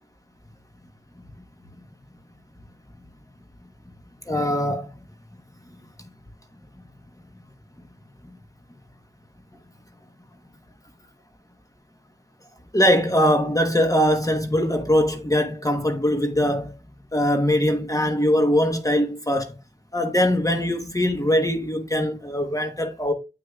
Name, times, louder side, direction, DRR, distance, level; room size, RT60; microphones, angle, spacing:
voice 1, 4.3-4.9 12.7-16.7 17.1-19.5 19.9-23.1, equal, 15° left, 1.1 m, -21 dB
8.9 x 6.4 x 2.4 m
wide cardioid pair, 55°, 19 cm